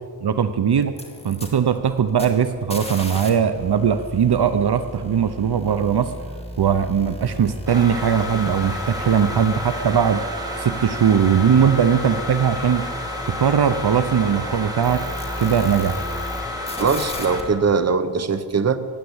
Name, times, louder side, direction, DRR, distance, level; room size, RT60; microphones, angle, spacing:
voice 1, 0.2-0.9 1.2-6.1 6.6-10.2 10.6-12.9 13.3-15.0 15.4-16.0, right 7 dB, 65° right, 11 dB, 0.8 m, -19 dB
sound 1, 0.8-3.3 3.5-16.4 16.7-17.4, equal, 15° left, 2.2 m, -36 dB
sound 2, 7.7-17.4, left 2 dB, 10° right, 2.6 m, -31 dB
voice 2, 16.8-18.8, right 5 dB, 40° right, 11 dB, 0.9 m, -21 dB
15.5 x 10.0 x 8.0 m, 2.1 s
wide cardioid pair, 90°, 42 cm